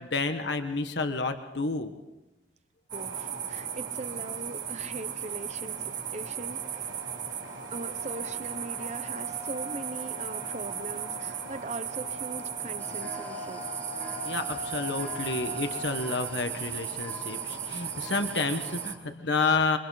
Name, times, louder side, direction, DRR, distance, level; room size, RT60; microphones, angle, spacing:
voice 1, 0.0-1.9 14.2-19.8, left 3 dB, 65° left, 7 dB, 1.3 m, -30 dB
voice 2, 2.9-6.9 7.7-13.6, right 2 dB, 40° right, 12 dB, 0.9 m, -41 dB
sound 1, 2.9-18.9, right 8 dB, 85° right, 3.2 m, -36 dB
sound 2, 3.6-3.7 4.1-4.4 4.8-15.9, left 1 dB, 55° right, 3.3 m, -44 dB
sound 3, 12.8-19.0, left 1 dB, 10° left, 1.0 m, -47 dB
27.5 x 24.5 x 4.1 m, 1.0 s
head